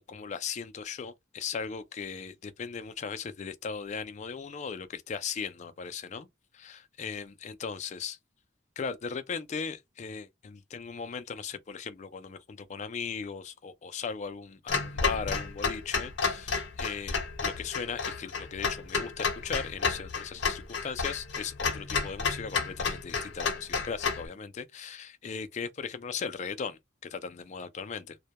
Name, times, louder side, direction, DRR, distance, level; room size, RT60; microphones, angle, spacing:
voice 1, 0.0-6.3 6.5-8.2 8.8-28.2, left 6 dB, 40° left, 0.3 m, -38 dB
Clock, 14.7-24.3, left 5 dB, 70° left, 0.8 m, -31 dB
2.1 x 2.1 x 2.8 m
head